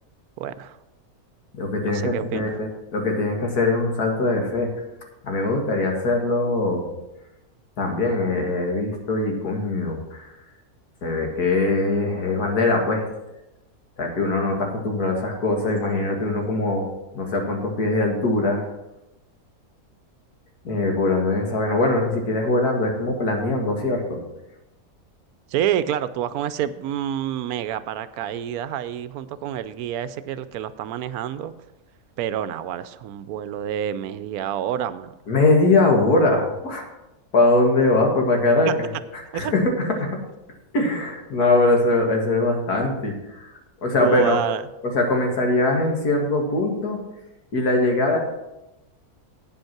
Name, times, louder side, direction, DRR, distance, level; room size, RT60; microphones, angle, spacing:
voice 1, 0.4-0.8 1.8-2.5 25.5-31.5 32.2-35.1 38.6-38.7 39.3-39.5 44.0-44.6, right 10 dB, 80° right, 14 dB, 1.1 m, -28 dB
voice 2, 1.6-4.7 5.2-6.9 7.8-10.3 11.0-13.1 14.0-16.9 17.1-18.6 20.6-24.2 35.3-36.8 37.3-38.9 39.3-40.2 40.7-43.5 43.8-44.4 44.8-47.0 47.5-48.2, left 2 dB, 85° left, 2 dB, 2.3 m, -22 dB
9.1 x 8.0 x 5.8 m, 0.96 s
omnidirectional pair, 1.6 m